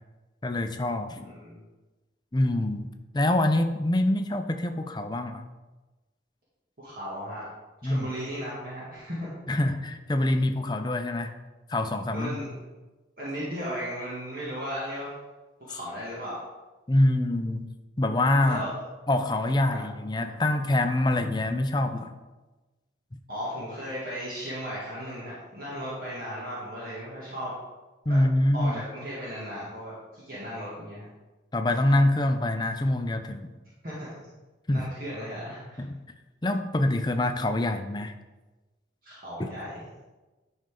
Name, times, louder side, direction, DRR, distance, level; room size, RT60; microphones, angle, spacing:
voice 1, 0.4-1.3 2.3-2.9 3.1-5.4 7.8-8.1 9.5-11.3 11.7-12.4 16.9-17.7 18.0-18.6 19.1-22.2 28.1-28.7 31.5-33.5 34.7-34.9 35.8-36.0 36.4-38.1 39.4-39.5, left 1 dB, 25° left, 6 dB, 0.5 m, -25 dB
voice 2, 1.2-1.6 6.8-7.5 7.8-9.4 12.1-12.5 13.2-15.2 15.6-16.4 18.5-18.8 19.6-19.8 23.3-27.5 28.1-28.2 28.5-31.1 33.8-34.1 34.7-35.8 39.0-39.7, equal, 50° right, -8 dB, 2.2 m, -36 dB
10.5 x 5.5 x 3.8 m, 1.2 s
head